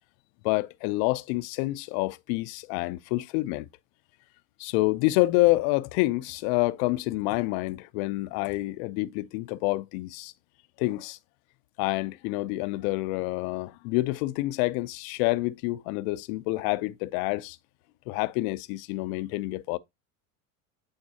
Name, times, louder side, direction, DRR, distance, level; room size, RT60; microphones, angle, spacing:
voice 1, 0.4-3.7 4.6-10.3 10.8-11.2 11.8-17.6 18.1-19.8, left 20 dB, 65° left, 0.6 m, -27 dB
8.9 x 4.0 x 2.7 m
supercardioid pair, 100°, 45 cm